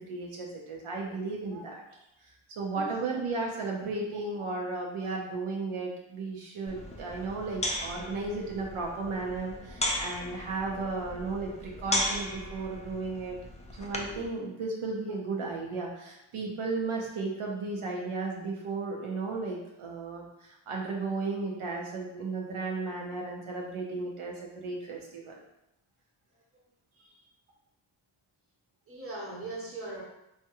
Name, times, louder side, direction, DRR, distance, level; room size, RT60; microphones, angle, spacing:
voice 1, 0.0-1.8 2.2-13.4 13.8-25.4, right 3 dB, 80° right, -1 dB, 0.7 m, -34 dB
voice 2, 4.1-4.5 25.2-25.4 26.5-26.6 28.9-30.0, right 2 dB, 25° right, -4 dB, 1.0 m, -41 dB
sound 1, 6.7-14.3, left 1 dB, 15° left, 0.3 m, -36 dB
3.5 x 2.1 x 2.8 m, 0.86 s
wide cardioid pair, 85°, 49 cm